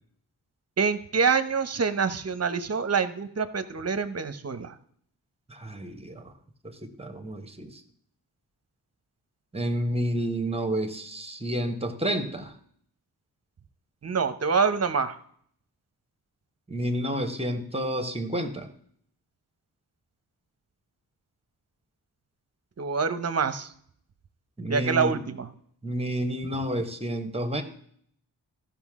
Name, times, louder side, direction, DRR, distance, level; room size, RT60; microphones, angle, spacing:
voice 1, 0.8-4.8 14.0-15.2 22.8-23.7 24.7-25.5, right 5 dB, 40° right, 12 dB, 0.9 m, -26 dB
voice 2, 5.5-6.3 6.6-7.8 9.5-12.5 16.7-18.7 24.6-25.2 25.8-27.6, right 1 dB, 15° right, 7 dB, 1.3 m, -30 dB
14.0 x 5.9 x 3.7 m, 0.63 s
cardioid pair, 55°, 41 cm